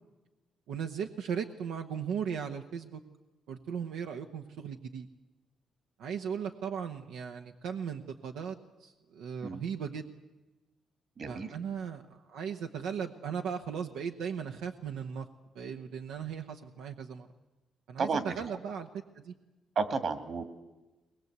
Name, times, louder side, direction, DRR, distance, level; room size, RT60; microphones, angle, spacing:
voice 1, 0.7-3.0 3.5-5.1 6.0-10.1 11.3-15.3 15.5-17.3 17.9-18.9 19.1-19.3, right 7 dB, 85° right, 5 dB, 1.0 m, -37 dB
voice 2, 11.2-11.5 18.0-18.3 19.8-20.4, right 4 dB, 55° right, 9 dB, 2.3 m, -32 dB
22.0 x 20.5 x 8.1 m, 1.1 s
cardioid pair, 90°, 0 cm